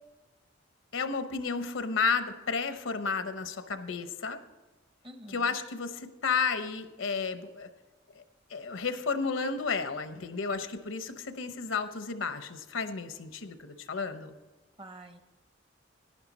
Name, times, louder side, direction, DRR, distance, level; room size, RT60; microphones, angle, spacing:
voice 1, 0.9-4.4 5.3-7.7 8.2-8.3 8.5-14.3, left 5 dB, 80° left, 10 dB, 0.7 m, -32 dB
voice 2, 5.0-5.6 14.8-15.2, right 1 dB, 25° right, 8 dB, 0.7 m, -47 dB
11.0 x 10.5 x 4.1 m, 1.1 s
head